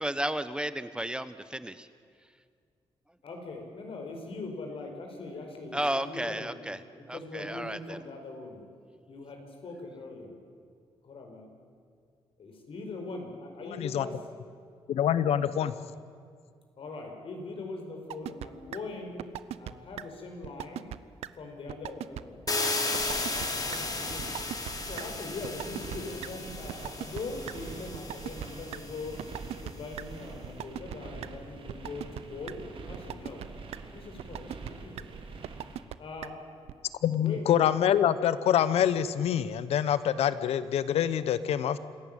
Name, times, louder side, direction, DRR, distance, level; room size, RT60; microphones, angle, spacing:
voice 1, 0.0-1.9 5.7-6.8 7.1-8.0, right 1 dB, 10° right, 12 dB, 1.0 m, -33 dB
voice 2, 3.2-8.7 9.1-10.4 11.0-11.5 12.4-14.2 16.8-19.2 19.6-20.9 21.3-22.4 23.1-24.3 24.9-29.2 29.6-33.5 33.9-35.1 36.0-36.4 36.6-36.8 37.0-37.4, left 3 dB, 65° left, 3 dB, 4.9 m, -41 dB
voice 3, 14.9-15.7 37.0-41.8, left 10 dB, 85° left, 15 dB, 0.9 m, -25 dB
sound 1, 18.1-18.5 18.7-18.8 19.2-19.7 20.0-20.1 20.4-21.0 21.2-21.3 21.7-22.2 22.5-22.6 22.9-23.5 23.7-23.8 24.2-24.7 25.0-25.1 25.4-26.0 26.2-26.3 26.7-27.5 27.9-28.8 29.2-29.7 30.0-30.1 30.4-31.0 31.2-31.3 31.7-32.2 32.5-32.6 32.9-33.5 33.7-33.8 34.2-34.7 35.0-35.1 35.4-36.0 36.2-36.3 36.7-36.8, right 12 dB, 90° right, 0.6 m, -37 dB
sound 2, 22.5-29.3, left 3 dB, 35° left, 3.5 m, -35 dB
sound 3, 23.0-35.8, right 3 dB, 60° right, 3.1 m, -45 dB
26.5 x 14.5 x 9.0 m, 2.1 s
cardioid pair, 75°, 10 cm